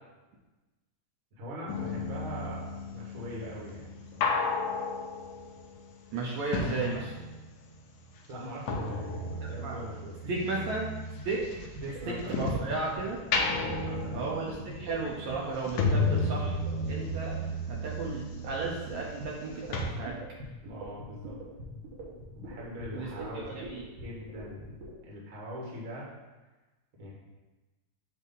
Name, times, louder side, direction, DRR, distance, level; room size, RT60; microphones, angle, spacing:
voice 1, 1.4-4.3 8.3-10.2 11.8-12.6 13.6-14.4 20.6-21.3 22.4-23.7 24.0-24.7 25.0-26.1 27.0-27.1, equal, 40° right, -4 dB, 1.3 m, -42 dB
sound 1, 1.7-7.7 7.9-12.8 13.2-19.5 19.7-19.8, left 2 dB, 75° left, 1.5 m, -33 dB
voice 2, 6.1-7.1 9.4-9.8 10.3-10.9 11.3-11.4 12.3-13.2 14.1-16.6 16.9-17.4 17.7-20.1 22.9-23.8, right 3 dB, 70° right, -3 dB, 1.9 m, -34 dB
sound 2, 11.2-24.9, right 2 dB, 90° right, 3.0 m, -43 dB
8.2 x 2.8 x 5.4 m, 1.1 s
omnidirectional pair, 3.7 m